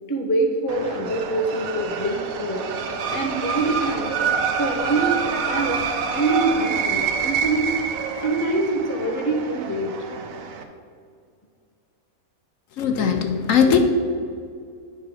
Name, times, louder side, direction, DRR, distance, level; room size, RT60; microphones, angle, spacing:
voice 1, 0.1-2.7 3.1-4.2 4.5-7.7 8.2-9.9, right 2 dB, 25° left, 1 dB, 0.4 m, -25 dB
sound 1, 0.7-10.6, right 6 dB, 70° right, 1.0 m, -27 dB
voice 2, 12.8-13.8, left 7 dB, 70° left, 6 dB, 0.9 m, -19 dB
9.2 x 3.3 x 6.1 m, 2.2 s
omnidirectional pair, 1.6 m